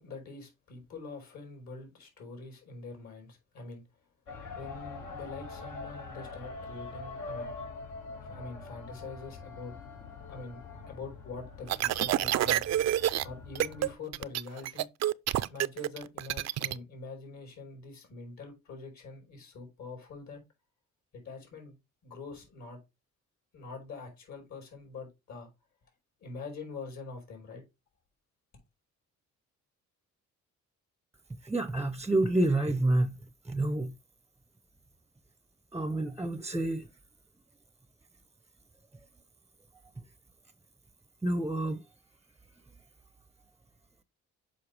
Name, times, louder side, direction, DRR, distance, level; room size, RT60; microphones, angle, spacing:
voice 1, 0.0-3.8 4.5-7.5 8.2-9.7 10.0-10.6 10.9-12.6 13.2-14.9 15.5-20.4 21.1-21.8 22.0-22.8 23.5-25.5 26.2-27.6, left 4 dB, 65° left, 4.5 m, -44 dB
sound 1, 4.3-13.9, left 3 dB, 85° left, 2.9 m, -44 dB
sound 2, 11.7-13.2 13.6-13.9 14.1-16.7, right 13 dB, 60° right, 0.5 m, -28 dB
voice 2, 31.4-33.2 33.5-33.9 35.7-36.9 41.2-41.8, right 2 dB, 10° right, 0.6 m, -28 dB
7.1 x 5.4 x 3.3 m
cardioid pair, 90°, 30 cm